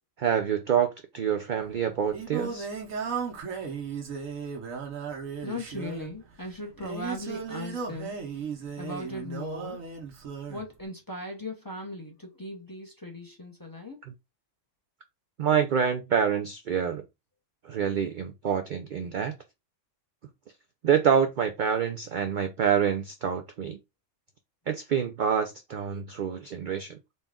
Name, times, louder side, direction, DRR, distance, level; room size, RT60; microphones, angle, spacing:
voice 1, 0.2-2.7 15.4-17.0 17.6-19.3 20.8-23.8 24.7-27.0, right 8 dB, 65° right, 0.5 m, -27 dB
Singing, 1.6-10.7, right 6 dB, 85° right, 1.3 m, -36 dB
voice 2, 5.4-8.2 8.8-9.8 10.5-14.0, left 1 dB, 20° left, 0.7 m, -38 dB
4.1 x 2.3 x 3.5 m
omnidirectional pair, 1.3 m